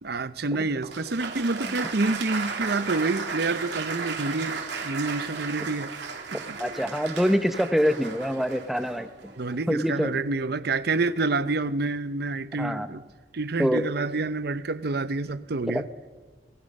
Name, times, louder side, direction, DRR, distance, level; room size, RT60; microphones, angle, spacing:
voice 1, 0.0-5.9 6.3-6.6 9.4-13.0 13.3-15.9, right 3 dB, 65° right, 0.8 m, -28 dB
Applause, 0.8-9.8, right 5 dB, 85° right, 2.7 m, -35 dB
voice 2, 6.6-9.1 9.7-10.1 12.6-12.9 13.6-13.8 15.7-15.8, equal, ahead, 0.9 m, -25 dB
27.0 x 20.0 x 5.4 m
head